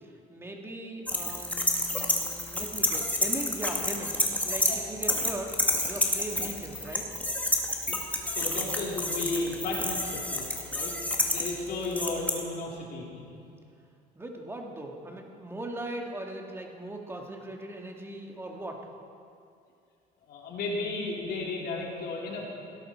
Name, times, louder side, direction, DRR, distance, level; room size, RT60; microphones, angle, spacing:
voice 1, 0.0-5.6 5.8-7.1 14.2-18.8, right 1 dB, 15° right, 1 dB, 1.9 m, -39 dB
sound 1, 1.1-4.7 5.0-12.3, left 1 dB, 10° left, 1.8 m, -29 dB
voice 2, 8.3-10.5 10.7-10.9 11.3-13.2 20.3-22.4, left 3 dB, 65° left, -3 dB, 3.5 m, -34 dB
17.5 x 12.0 x 4.5 m, 2.5 s
cardioid pair, 110°, 17 cm